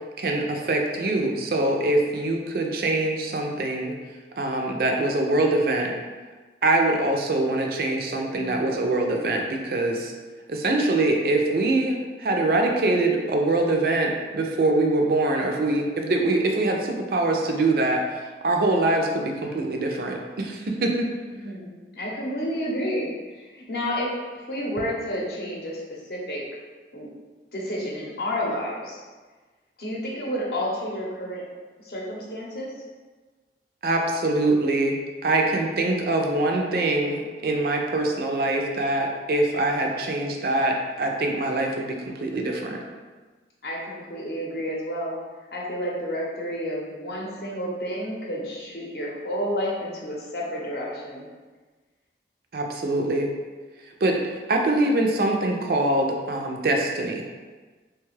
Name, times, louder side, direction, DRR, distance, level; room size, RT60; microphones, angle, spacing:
voice 1, 0.2-3.9 4.4-5.9 6.6-10.1 10.5-21.1 33.8-34.9 35.2-42.8 52.5-53.3 54.0-57.2, right 2 dB, 55° right, 2 dB, 0.4 m, -24 dB
voice 2, 8.3-8.7 21.3-26.4 26.9-27.1 27.5-29.0 29.8-31.4 31.8-32.7 43.6-45.2 45.5-51.2, equal, 60° left, -3 dB, 0.7 m, -30 dB
3.1 x 2.3 x 3.1 m, 1.4 s
head